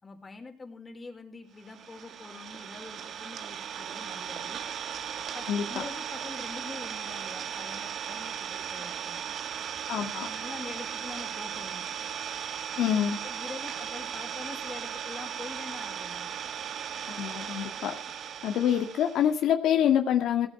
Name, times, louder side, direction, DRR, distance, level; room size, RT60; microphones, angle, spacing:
voice 1, 0.0-4.6 5.3-9.2 10.0-11.9 12.9-13.0 13.2-16.3, left 3 dB, 25° left, 4 dB, 4.7 m, -44 dB
Idling, 1.6-19.3, right 8 dB, 70° right, 1.7 m, -37 dB
voice 2, 5.5-5.8 9.9-10.3 12.8-13.2 17.1-18.0 18.4-20.5, left 9 dB, 80° left, 4 dB, 2.1 m, -26 dB
18.0 x 9.3 x 5.9 m, 0.40 s
cardioid pair, 90°, 0 cm